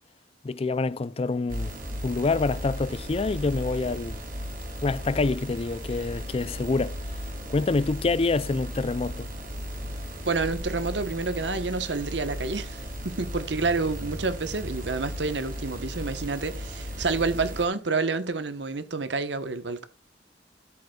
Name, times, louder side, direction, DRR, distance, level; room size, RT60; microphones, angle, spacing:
voice 1, 0.4-1.7 2.0-4.2 4.8-7.0 7.5-9.3, left 3 dB, 30° left, 0.4 m, -26 dB
sound 1, 1.5-17.7, equal, 50° right, 3.0 m, -36 dB
voice 2, 10.3-19.9, right 3 dB, 65° right, 1.1 m, -29 dB
13.0 x 7.9 x 2.3 m
head